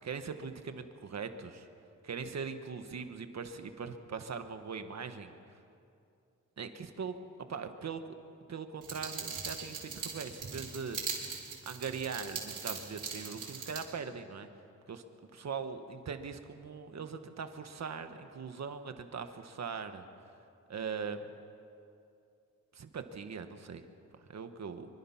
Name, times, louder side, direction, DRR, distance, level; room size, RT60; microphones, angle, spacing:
voice 1, 0.0-1.7 2.0-5.3 6.6-7.2 7.5-8.1 8.5-11.0 11.6-14.5 14.9-15.0 15.3-20.0 20.7-21.2 22.7-23.8 24.2-24.9, right 6 dB, 60° right, 8 dB, 1.4 m, -41 dB
sound 1, 8.8-13.8, right 5 dB, 90° right, 4.5 m, -40 dB
25.0 x 24.0 x 5.8 m, 2.5 s
wide cardioid pair, 170°, 30 cm